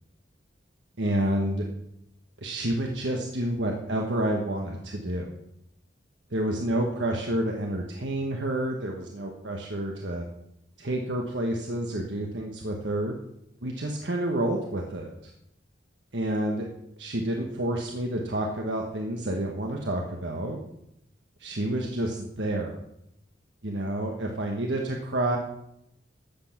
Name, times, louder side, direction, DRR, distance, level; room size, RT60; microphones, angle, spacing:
voice 1, 1.0-1.7 2.4-5.3 6.3-10.3 10.8-13.1 13.6-15.3 16.1-16.7 17.0-20.6 21.4-22.8 23.6-25.4, right 1 dB, 75° right, 1 dB, 1.4 m, -29 dB
14.0 x 8.1 x 5.9 m, 0.82 s
head